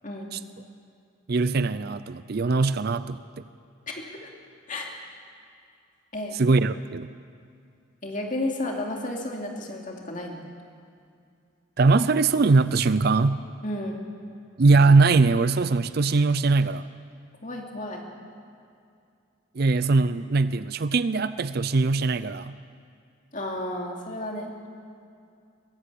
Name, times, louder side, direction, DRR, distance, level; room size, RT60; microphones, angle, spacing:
voice 1, 1.3-3.4 6.3-7.1 11.8-13.4 14.6-16.9 19.5-22.6, right 3 dB, 50° right, 14 dB, 0.5 m, -21 dB
voice 2, 8.0-10.4 13.6-14.0 17.4-18.0 23.3-24.5, left 1 dB, 40° left, 0 dB, 2.7 m, -32 dB
22.0 x 15.5 x 8.5 m, 2.4 s
head